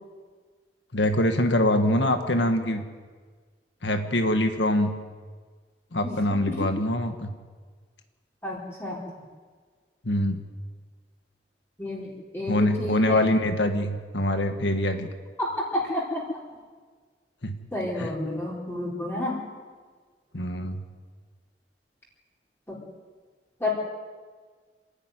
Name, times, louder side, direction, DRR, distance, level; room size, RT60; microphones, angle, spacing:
voice 1, 0.9-2.8 3.8-4.9 5.9-7.3 10.0-10.4 12.5-15.1 17.4-17.6 18.0-18.1 20.3-20.8, left 1 dB, 85° left, 6 dB, 1.6 m, -24 dB
voice 2, 8.4-9.0 11.8-12.1 12.3-13.3 15.4-16.2 17.7-19.3 22.7-22.8 23.6-23.7, left 1 dB, 15° left, -5 dB, 4.4 m, -30 dB
26.5 x 11.0 x 9.5 m, 1.5 s
head